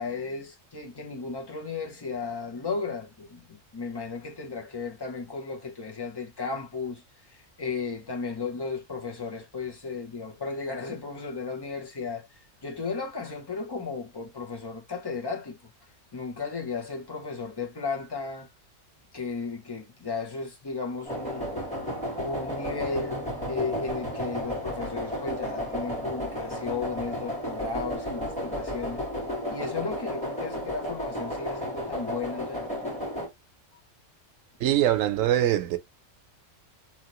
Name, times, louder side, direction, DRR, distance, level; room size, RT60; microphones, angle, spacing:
voice 1, 0.0-7.0 7.3-12.3 12.6-15.6 16.1-18.5 19.1-21.5 22.2-23.2 23.5-29.0 29.5-32.7, left 4 dB, 30° left, 0.5 m, -34 dB
sound 1, 21.0-33.3, equal, 5° left, 1.7 m, -33 dB
voice 2, 34.6-35.8, right 12 dB, 90° right, 1.0 m, -23 dB
2.9 x 2.8 x 2.9 m
omnidirectional pair, 1.3 m